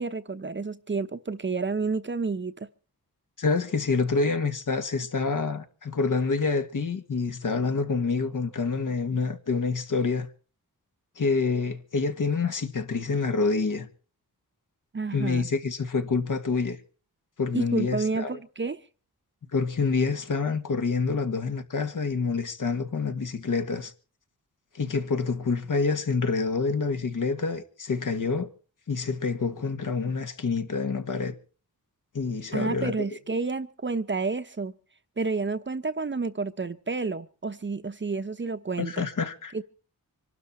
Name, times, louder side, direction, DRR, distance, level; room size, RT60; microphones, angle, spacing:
voice 1, 0.0-2.7 14.9-15.5 17.5-18.8 32.5-34.7 35.2-39.1 39.5-39.6, right 4 dB, 30° right, 0.9 m, -30 dB
voice 2, 3.4-10.3 11.2-13.9 15.1-16.8 17.4-18.4 19.5-23.9 24.7-28.5 28.9-31.4 32.1-32.9 38.8-39.5, left 4 dB, 60° left, 2.0 m, -27 dB
25.5 x 12.5 x 4.4 m
wide cardioid pair, 135°, 36 cm